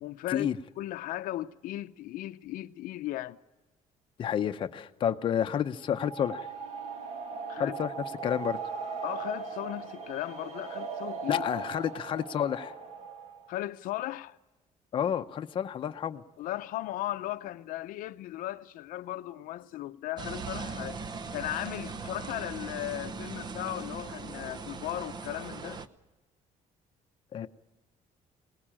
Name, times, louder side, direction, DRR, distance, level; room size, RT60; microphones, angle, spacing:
voice 1, 0.0-0.5 0.8-3.4 7.5-7.8 9.0-11.7 13.5-14.4 16.4-21.0 21.3-25.8, left 14 dB, 85° left, 0.7 m, -37 dB
voice 2, 4.2-6.5 7.6-7.9 8.2-8.6 11.3-12.7 14.9-16.2 27.3-27.5, left 9 dB, 40° left, 0.7 m, -30 dB
sound 1, 5.8-13.5, right 5 dB, 55° right, 1.9 m, -39 dB
sound 2, 20.2-25.9, right 4 dB, 30° right, 0.8 m, -39 dB
24.5 x 19.5 x 8.8 m
cardioid pair, 175°, 14 cm